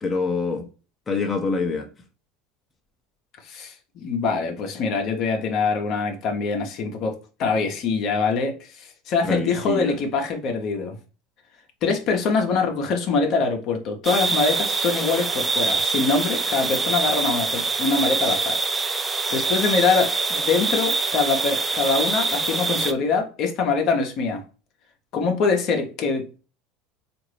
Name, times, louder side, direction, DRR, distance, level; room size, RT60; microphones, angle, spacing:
voice 1, 0.0-0.7 1.1-1.9 9.2-10.0, left 4 dB, 20° left, 0.7 m, -25 dB
voice 2, 3.4-11.0 11.8-18.6 19.0-24.4 25.1-26.4, left 4 dB, 55° left, 0.8 m, -24 dB
sound 1, 14.0-22.9, right 3 dB, 20° right, 0.5 m, -24 dB
3.7 x 2.5 x 3.1 m
hypercardioid pair, 75°, 0 cm